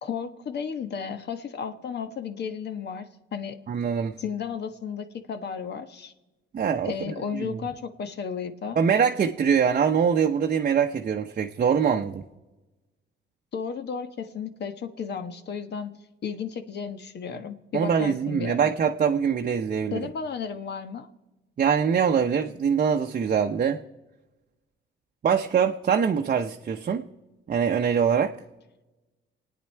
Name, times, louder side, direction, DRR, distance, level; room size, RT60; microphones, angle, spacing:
voice 1, 0.0-3.6 4.2-6.1 6.8-8.8 13.5-18.7 19.9-21.1, left 6 dB, 60° left, 9 dB, 1.3 m, -34 dB
voice 2, 3.7-4.1 6.5-6.9 7.3-7.6 8.8-12.2 17.7-20.0 21.6-23.8 25.2-27.1 27.5-28.3, right 7 dB, 45° right, 3 dB, 0.8 m, -23 dB
27.5 x 9.3 x 4.5 m, 1.1 s
cardioid pair, 90°, 20 cm